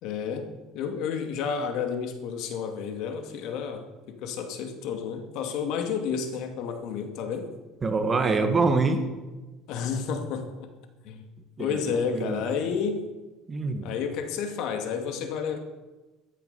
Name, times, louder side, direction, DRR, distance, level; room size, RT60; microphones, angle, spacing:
voice 1, 0.0-0.5 0.7-7.5 9.7-10.7 11.0-11.2 11.6-13.0 13.8-15.6, left 6 dB, 65° left, 6 dB, 2.4 m, -31 dB
voice 2, 7.8-9.0 11.6-12.4 13.5-13.9, right 3 dB, 25° right, 7 dB, 1.9 m, -25 dB
13.5 x 13.5 x 7.0 m, 1.2 s
cardioid pair, 135°, 0 cm